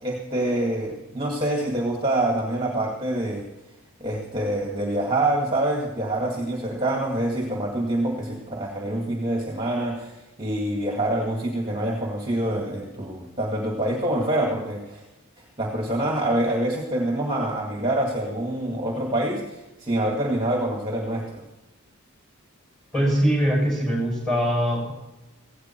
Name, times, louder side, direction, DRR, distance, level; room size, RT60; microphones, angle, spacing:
voice 1, 0.0-3.5 4.0-15.0 15.4-21.4, right 1 dB, 20° right, 0 dB, 2.0 m, -26 dB
voice 2, 22.9-24.9, equal, ahead, -1 dB, 6.9 m, -22 dB
17.0 x 16.0 x 4.5 m, 1.0 s
head